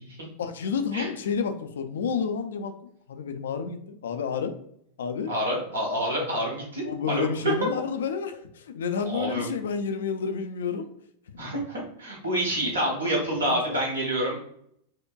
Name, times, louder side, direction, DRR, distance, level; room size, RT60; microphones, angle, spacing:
voice 1, 0.4-2.7 3.1-4.5 5.0-5.3 6.8-10.9 11.3-11.4 13.4-13.8, left 6 dB, 60° left, 8 dB, 0.3 m, -30 dB
voice 2, 5.3-7.5 9.0-9.5 11.4-14.4, right 1 dB, 70° right, -1 dB, 1.2 m, -28 dB
4.6 x 2.2 x 2.3 m, 0.70 s
figure-of-eight pair, 90°, 0 cm